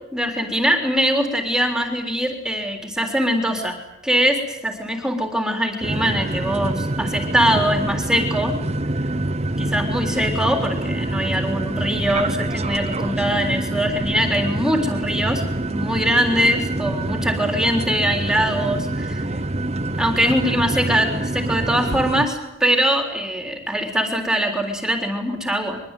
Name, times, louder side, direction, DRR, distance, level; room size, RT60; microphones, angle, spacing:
voice 1, 0.1-3.8 4.0-8.6 9.6-15.4 15.7-19.2 20.0-25.8, equal, 5° right, 4 dB, 3.7 m, -22 dB
sound 1, 5.8-22.3, right 1 dB, 35° right, 1.2 m, -26 dB
23.5 x 23.5 x 9.2 m, 0.90 s
head